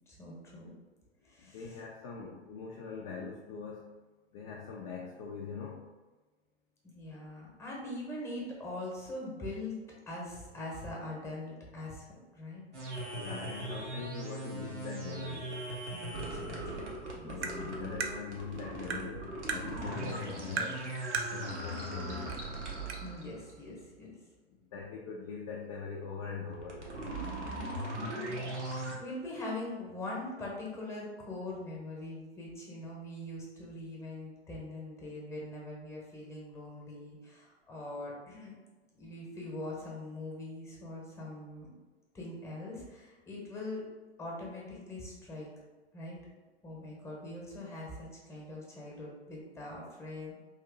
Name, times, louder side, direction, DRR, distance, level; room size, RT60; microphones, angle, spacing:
voice 1, 0.1-0.7 1.2-1.8 6.8-9.8 10.1-12.0 12.3-12.6 15.9-16.9 17.1-17.4 17.6-17.7 23.0-24.2 27.9-28.2 28.6-38.6 39.0-41.7 42.1-43.8 44.2-45.5 45.9-46.2 46.6-50.3, left 2 dB, 10° left, -3 dB, 1.0 m, -42 dB
voice 2, 1.4-3.9 4.3-5.8 13.1-15.5 17.2-20.8 21.3-22.5 24.6-26.9, left 5 dB, 30° left, -3 dB, 0.5 m, -42 dB
sound 1, 12.7-23.5 26.5-29.0, right 1 dB, 90° right, 1.0 m, -39 dB
Tap, 17.4-17.6 18.0-18.1 18.9-19.1 19.5-19.6 20.6-20.8 21.1-21.3 22.3-22.4 22.9-23.0, right 5 dB, 65° right, 0.5 m, -33 dB
3.1 x 2.7 x 3.7 m, 1.2 s
figure-of-eight pair, 105°, 34 cm